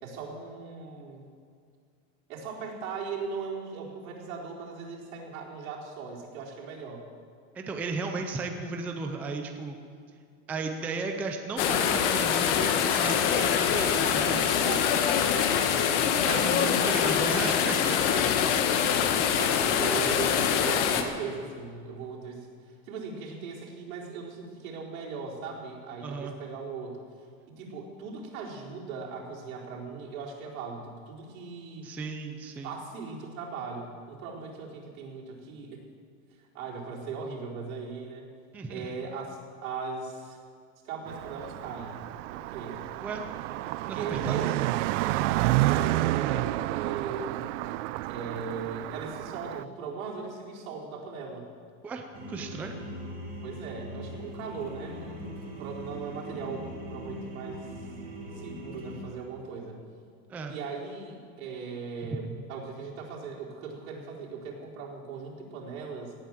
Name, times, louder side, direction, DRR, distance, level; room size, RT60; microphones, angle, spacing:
voice 1, 0.0-1.2 2.3-7.0 8.1-8.2 14.5-15.8 19.3-27.0 27.5-31.9 32.6-35.8 36.5-38.3 38.7-40.4 40.8-42.0 42.3-42.8 43.9-44.5 45.4-47.5 48.1-51.5 53.4-57.7 58.3-59.8 60.5-66.2, right 5 dB, 90° right, -3 dB, 4.3 m, -39 dB
voice 2, 7.5-9.8 10.5-14.6 16.2-18.2 26.0-26.3 31.8-32.7 38.5-38.9 43.0-43.2 43.9-44.4 51.8-52.8 60.3-60.5 62.1-62.2, right 3 dB, 5° right, 4 dB, 0.3 m, -35 dB
sound 1, 11.6-21.0, left 8 dB, 60° left, 1.5 m, -24 dB
Car passing by, 41.1-49.6, right 17 dB, 65° right, 0.5 m, -30 dB
sound 2, 52.1-59.0, equal, 20° right, 2.6 m, -40 dB
18.0 x 9.2 x 7.6 m, 2.2 s
supercardioid pair, 165°, 40 cm